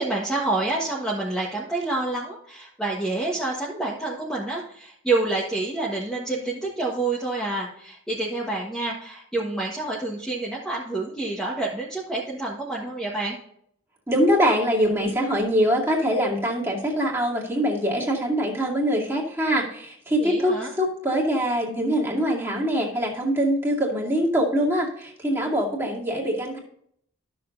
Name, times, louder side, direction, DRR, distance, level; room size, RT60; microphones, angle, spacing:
voice 1, 0.0-13.4 20.2-20.7, right 2 dB, 5° left, -5 dB, 1.3 m, -28 dB
voice 2, 14.1-26.6, equal, 10° right, -4 dB, 2.4 m, -23 dB
12.5 x 7.0 x 2.7 m, 0.66 s
head